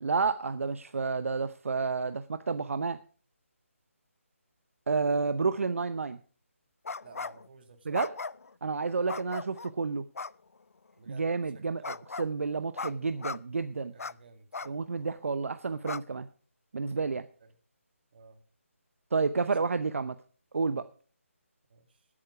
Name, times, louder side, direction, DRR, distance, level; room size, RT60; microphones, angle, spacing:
voice 1, 0.0-3.0 4.9-6.2 7.8-8.1 8.6-10.0 11.1-13.9 14.7-16.3 16.7-17.3 19.1-20.2 20.5-20.9, right 4 dB, 65° right, 11 dB, 0.7 m, -30 dB
sound 1, 6.8-7.5 7.9-8.5 9.1-9.7 10.2-10.3 11.8-12.3 12.8-12.9 13.2-13.4 14.0-14.1 14.5-14.7 15.2-15.3 15.8-16.0, left 4 dB, 80° left, 0.5 m, -37 dB
voice 2, 7.0-8.0 9.0-9.3 11.0-11.3 11.5-12.0 13.9-14.9 17.4-17.5 18.1-18.4 19.5-19.7 21.7-22.1, right 4 dB, 45° right, 8 dB, 1.9 m, -54 dB
16.0 x 8.8 x 4.8 m, 0.42 s
figure-of-eight pair, 160°, 8 cm